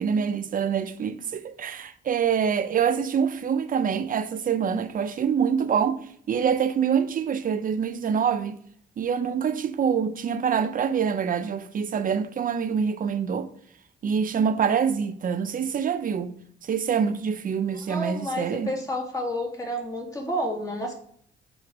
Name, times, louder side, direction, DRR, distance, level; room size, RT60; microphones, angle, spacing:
voice 1, 0.0-6.0 6.3-8.5 9.0-13.5 14.0-16.3 16.6-18.7, right 7 dB, 45° right, 0.6 m, -25 dB
voice 2, 17.9-20.9, equal, 15° left, 1.7 m, -30 dB
7.2 x 3.2 x 4.7 m
cardioid pair, 90°, 20 cm